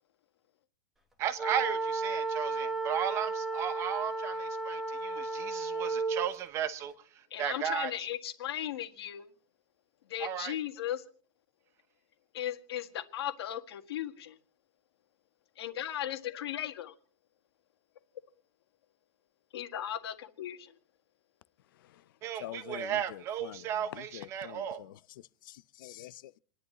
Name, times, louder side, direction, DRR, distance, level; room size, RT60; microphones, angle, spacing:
voice 1, 1.2-7.9 10.2-10.5 22.2-24.8, right 9 dB, 20° right, 0.9 m, -35 dB
sound 1, 1.4-6.3, right 3 dB, ahead, 1.2 m, -33 dB
voice 2, 7.3-9.3 10.1-11.0 12.3-14.4 15.6-16.9 19.5-20.7, left 11 dB, 70° left, 1.8 m, -37 dB
voice 3, 22.4-25.0 25.4-26.4, left 14 dB, 50° left, 0.5 m, -46 dB
29.0 x 11.0 x 3.0 m
supercardioid pair, 180°, 14 cm